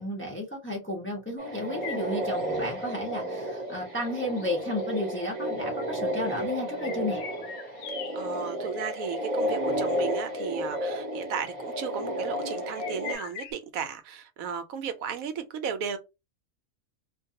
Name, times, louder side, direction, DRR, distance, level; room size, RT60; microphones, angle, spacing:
voice 1, 0.0-7.2, left 1 dB, 15° left, 0.5 m, -33 dB
sound 1, 1.4-13.1, equal, 30° right, 0.8 m, -32 dB
sound 2, 1.8-8.6 9.0-9.2 9.4-9.5 10.8-10.9 12.8-13.5, left 7 dB, 70° left, 0.9 m, -43 dB
voice 2, 8.1-16.0, right 7 dB, 80° right, 1.0 m, -35 dB
2.5 x 2.3 x 2.7 m
omnidirectional pair, 1.4 m